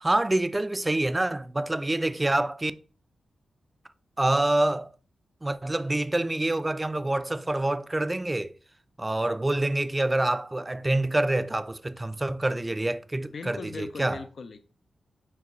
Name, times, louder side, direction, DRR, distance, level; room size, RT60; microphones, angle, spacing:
voice 1, 0.0-2.7 4.2-4.9 5.4-8.5 9.0-14.2, right 2 dB, 25° right, 0.4 m, -26 dB
voice 2, 13.3-14.6, left 4 dB, 65° left, 0.4 m, -39 dB
4.7 x 3.5 x 3.1 m
supercardioid pair, 40°, 0 cm